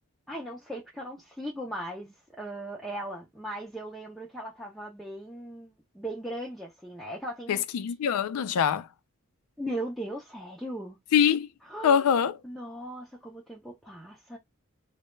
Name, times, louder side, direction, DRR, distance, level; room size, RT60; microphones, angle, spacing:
voice 1, 0.3-7.6 9.6-11.0 11.7-12.1 12.4-14.4, right 1 dB, ahead, 0.4 m, -38 dB
voice 2, 7.5-8.9 11.1-11.5 11.8-12.4, left 8 dB, 80° left, 0.3 m, -24 dB
2.2 x 2.0 x 3.0 m
head